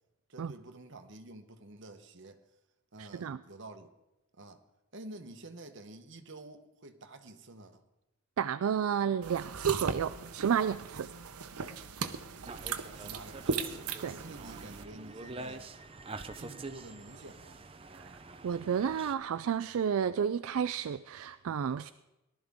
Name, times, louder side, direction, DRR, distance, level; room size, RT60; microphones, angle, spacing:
voice 1, 0.3-2.4 2.9-3.9 4.3-4.6 4.9-7.8 12.6-13.7 14.0-15.7 16.4-17.6, right 2 dB, 55° right, 7 dB, 1.1 m, -49 dB
voice 2, 3.0-3.4 8.4-11.1 14.0-14.1 17.9-18.1 18.4-21.9, right 7 dB, 70° right, 12 dB, 0.3 m, -31 dB
sound 1, 9.2-14.8, right 5 dB, 85° right, 0.8 m, -38 dB
sound 2, 12.5-19.1, right 2 dB, 25° right, 0.6 m, -46 dB
18.5 x 12.0 x 3.6 m, 0.97 s
head